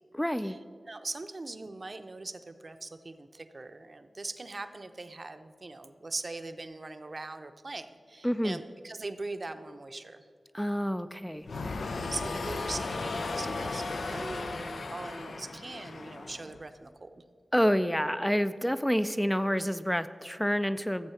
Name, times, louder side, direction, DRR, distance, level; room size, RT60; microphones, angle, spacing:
voice 1, 0.1-0.6 8.2-8.6 10.5-11.5 17.5-21.1, equal, 5° left, 11 dB, 0.3 m, -28 dB
voice 2, 0.9-10.3 11.8-17.2, right 2 dB, 45° right, 9 dB, 0.6 m, -41 dB
sound 1, 11.4-16.6, left 3 dB, 90° left, 0.6 m, -36 dB
14.0 x 7.8 x 5.7 m, 2.3 s
wide cardioid pair, 95°, 0 cm